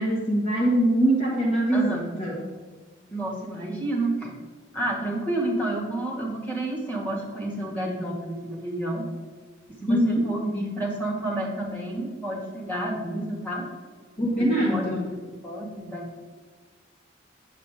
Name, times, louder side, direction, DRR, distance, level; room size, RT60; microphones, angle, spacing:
voice 1, 0.0-2.5 9.9-10.3 14.2-15.1, right 1 dB, 35° left, -3 dB, 1.4 m, -23 dB
voice 2, 1.7-2.1 3.1-4.4 4.7-9.0 9.8-13.6 14.4-16.2, right 1 dB, 10° left, -3 dB, 2.2 m, -30 dB
9.0 x 8.4 x 3.8 m, 1.4 s
head